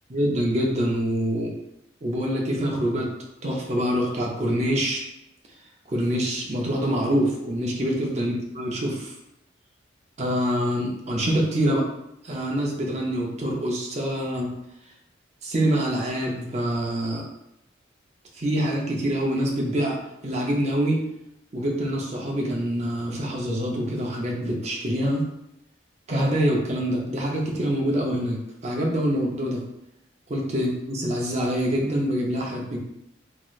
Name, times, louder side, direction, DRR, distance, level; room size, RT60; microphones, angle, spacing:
voice 1, 0.1-1.5 2.0-3.1 3.4-5.0 5.9-9.1 10.2-11.8 12.2-14.5 15.4-17.2 18.4-21.0 21.5-25.3 26.1-29.6 30.3-32.8, equal, 35° right, -1 dB, 0.6 m, -25 dB
3.1 x 2.8 x 2.4 m, 0.84 s
head